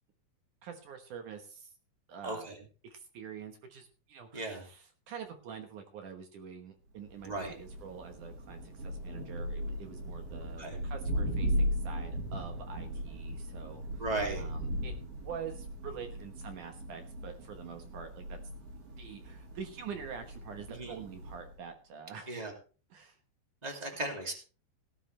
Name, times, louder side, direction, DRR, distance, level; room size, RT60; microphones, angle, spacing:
voice 1, 0.6-1.7 2.1-2.5 2.9-14.0 14.4-14.9 15.2-18.4 19.0-22.5 22.9-23.2 24.0-24.1, right 7 dB, 65° right, 6 dB, 2.4 m, -46 dB
voice 2, 2.2-2.6 4.3-4.6 7.2-7.5 10.6-10.8 14.0-14.4 20.7-20.9 22.3-22.5 23.6-24.3, right 2 dB, 15° right, 2 dB, 1.7 m, -36 dB
Thunder, 7.0-21.6, equal, 40° right, 4.2 m, -38 dB
17.5 x 11.5 x 3.3 m, 0.37 s
omnidirectional pair, 4.6 m